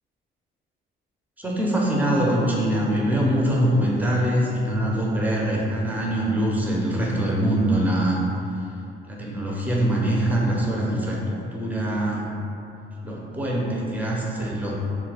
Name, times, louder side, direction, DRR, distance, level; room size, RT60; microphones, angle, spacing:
voice 1, 1.4-8.2 9.1-12.2 13.0-14.7, right 1 dB, 10° right, -3 dB, 0.6 m, -23 dB
3.1 x 2.2 x 3.3 m, 2.7 s
cardioid pair, 90°, 20 cm